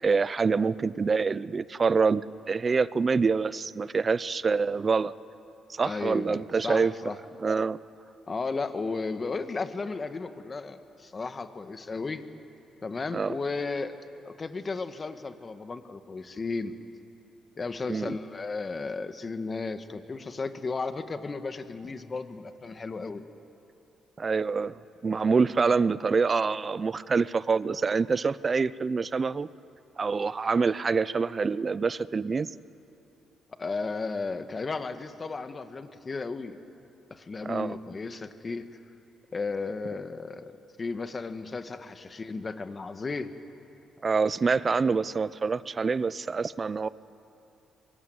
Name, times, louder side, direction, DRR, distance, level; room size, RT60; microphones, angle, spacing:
voice 1, 0.0-5.1 5.7-6.9 7.4-7.8 13.1-13.4 17.9-18.1 24.2-29.5 30.0-32.5 37.4-37.8 44.0-46.9, right 4 dB, 35° right, 18 dB, 0.6 m, -26 dB
voice 2, 5.8-7.2 8.3-12.2 12.8-13.9 14.2-16.7 17.6-23.2 33.6-36.6 37.1-38.6 39.3-40.5 40.8-43.3, left 4 dB, 35° left, 9 dB, 1.6 m, -34 dB
24.5 x 22.0 x 9.5 m, 2.7 s
cardioid pair, 90°, 0 cm